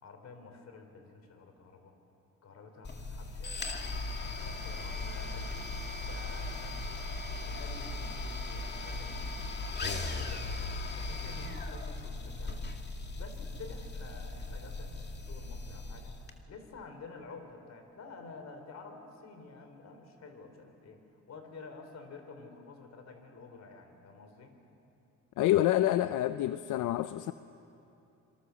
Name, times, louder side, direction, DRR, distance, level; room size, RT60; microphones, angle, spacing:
voice 1, 0.0-1.9 2.4-3.8 4.3-5.6 6.0-7.0 7.4-10.5 11.0-12.7 13.2-16.1 16.5-21.0 21.3-24.5, left 3 dB, 60° left, 6 dB, 3.9 m, -50 dB
sound 1, 2.8-16.3, left 3 dB, 35° left, 2.3 m, -38 dB
voice 2, 25.4-27.3, left 13 dB, 85° left, 12 dB, 0.6 m, -27 dB
26.5 x 25.0 x 7.1 m, 2.8 s
cardioid pair, 90°, 30 cm